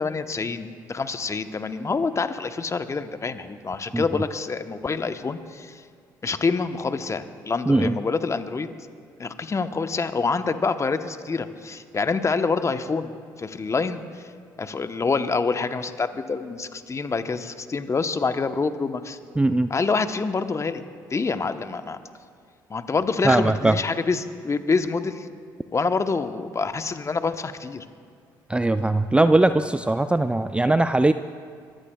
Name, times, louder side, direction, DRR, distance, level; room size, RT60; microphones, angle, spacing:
voice 1, 0.0-5.8 6.2-8.7 9.2-13.1 13.4-14.2 14.6-19.2 19.7-20.8 21.1-22.0 22.7-25.3 25.7-27.8, left 4 dB, 30° left, 10 dB, 0.9 m, -26 dB
voice 2, 7.7-8.0 19.4-19.7 23.2-23.8 28.5-31.1, right 2 dB, 10° right, 11 dB, 0.4 m, -20 dB
23.5 x 15.5 x 2.3 m, 2.2 s
hypercardioid pair, 55°, 10 cm